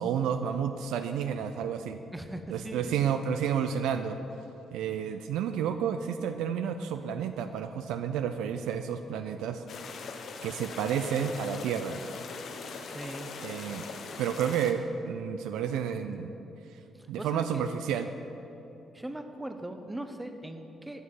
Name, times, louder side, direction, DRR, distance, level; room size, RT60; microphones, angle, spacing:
voice 1, 0.0-2.0 2.5-4.2 4.7-9.6 10.4-12.0 13.4-13.9 14.2-16.3 17.1-18.1, right 8 dB, 75° right, 8 dB, 0.3 m, -31 dB
voice 2, 2.1-3.0 12.9-13.3 16.9-17.6 18.9-21.0, right 1 dB, 15° right, 7 dB, 0.9 m, -40 dB
sound 1, 9.7-14.7, left 4 dB, 60° left, 0.7 m, -41 dB
11.0 x 5.9 x 4.8 m, 2.9 s
hypercardioid pair, 45°, 0 cm